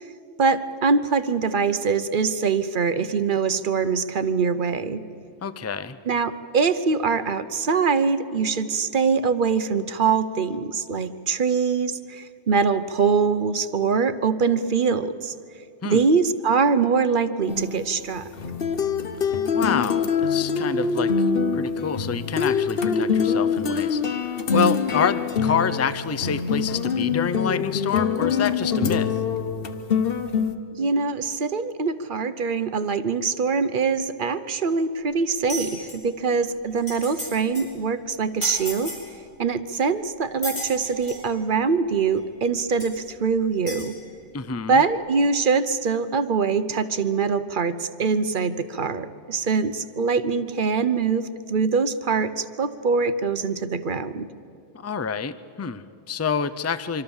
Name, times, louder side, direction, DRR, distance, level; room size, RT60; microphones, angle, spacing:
voice 1, 0.4-5.0 6.1-15.3 15.8-18.3 30.8-38.9 39.4-44.0 44.7-54.3, right 5 dB, 50° right, 12 dB, 0.9 m, -23 dB
voice 2, 5.4-6.0 15.8-16.0 19.5-21.1 21.5-29.1 44.3-44.8 54.8-57.0, left 6 dB, 20° left, 14 dB, 0.4 m, -27 dB
sound 1, 17.5-30.6, left 6 dB, 55° left, 1.1 m, -24 dB
sound 2, 35.5-35.9 36.5-36.6 36.8-37.3 37.5-37.7 38.4-39.0 39.7-39.8 40.4-41.2 42.2-42.3 42.8-42.9 43.7-43.9, equal, 75° left, 7.3 m, -32 dB
25.5 x 25.0 x 7.2 m, 2.6 s
omnidirectional pair, 1.2 m